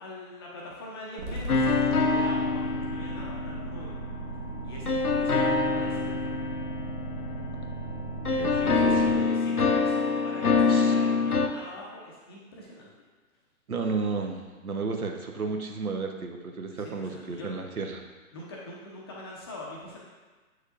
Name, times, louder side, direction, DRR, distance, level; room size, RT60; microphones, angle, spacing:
voice 1, 0.0-4.0 4.6-6.5 8.4-12.9 16.7-17.8 18.3-20.0, left 1 dB, 15° left, -4 dB, 0.6 m, -43 dB
sound 1, 1.2-9.2, right 2 dB, 20° right, 1.0 m, -36 dB
sound 2, 1.5-4.2 4.9-7.9 8.3-11.5, left 4 dB, 90° left, 0.7 m, -25 dB
voice 2, 8.3-9.1 10.7-10.9 13.7-18.0, right 4 dB, 75° right, 4 dB, 1.0 m, -33 dB
8.3 x 6.4 x 2.5 m, 1.3 s
figure-of-eight pair, 130°, 44 cm